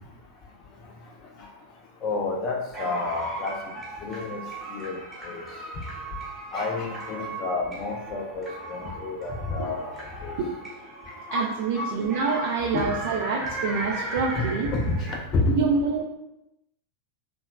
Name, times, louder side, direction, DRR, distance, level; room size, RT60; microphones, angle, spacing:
voice 1, 2.0-3.6 4.0-4.4 4.7-5.0 5.2-5.4 6.5-9.9 10.2-10.3 11.3-11.5 11.7-12.0 12.7-12.9 14.3-15.6, left 3 dB, 35° left, 1 dB, 0.4 m, -29 dB
sound 1, 2.7-15.2, right 1 dB, 10° right, 0.8 m, -37 dB
voice 2, 11.3-14.7 15.5-16.0, right 4 dB, 50° right, 0 dB, 0.3 m, -26 dB
2.9 x 2.1 x 2.2 m, 0.89 s
figure-of-eight pair, 90°, 0 cm